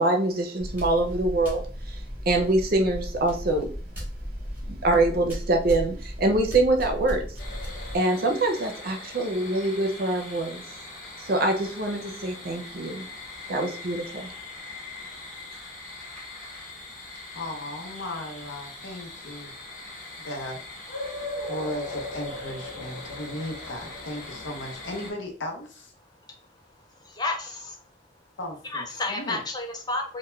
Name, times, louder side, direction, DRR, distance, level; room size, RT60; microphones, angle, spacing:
voice 1, 0.0-3.7 4.7-7.3 7.9-10.6 11.2-13.1 13.5-14.3, right 2 dB, 50° right, 4 dB, 0.5 m, -25 dB
sound 1, 0.6-8.0, equal, 10° right, 0.8 m, -35 dB
sound 2, 7.4-25.1, left 2 dB, 45° left, 0.9 m, -40 dB
voice 2, 17.3-19.5 20.2-20.6 21.2-25.9 28.4-29.4, left 1 dB, 80° left, 3 dB, 0.7 m, -36 dB
voice 3, 27.0-27.8 28.7-30.2, left 2 dB, 20° left, 3 dB, 0.5 m, -31 dB
2.2 x 2.1 x 3.0 m, 0.41 s
head